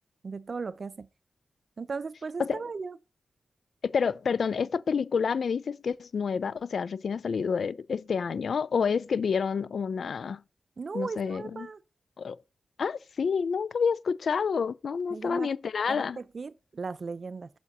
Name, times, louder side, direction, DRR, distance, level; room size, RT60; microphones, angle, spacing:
voice 1, 0.2-1.1 1.8-3.0 10.8-11.8 15.1-15.5 15.9-17.5, right 4 dB, 55° right, 0.5 m, -37 dB
voice 2, 3.8-10.4 10.9-11.7 12.2-12.4 12.8-16.2, left 6 dB, 75° left, 0.3 m, -28 dB
5.9 x 4.0 x 6.0 m
cardioid pair, 50°, 0 cm